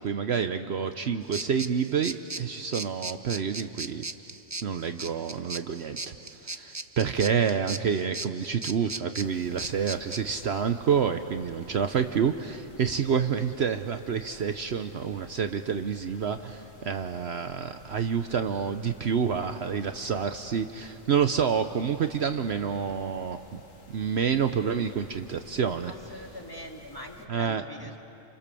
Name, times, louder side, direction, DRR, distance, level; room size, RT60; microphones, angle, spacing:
voice 1, 0.0-4.0 4.6-23.6 23.9-25.9 27.3-27.6, right 7 dB, 60° right, 8 dB, 1.0 m, -28 dB
sound 1, 1.3-10.2, right 3 dB, 25° right, 0.4 m, -38 dB
sound 2, 9.2-27.3, left 3 dB, 85° left, 2.4 m, -53 dB
voice 2, 25.9-28.0, left 1 dB, 15° left, 0 dB, 2.2 m, -43 dB
29.0 x 28.0 x 6.9 m, 2.9 s
omnidirectional pair, 1.3 m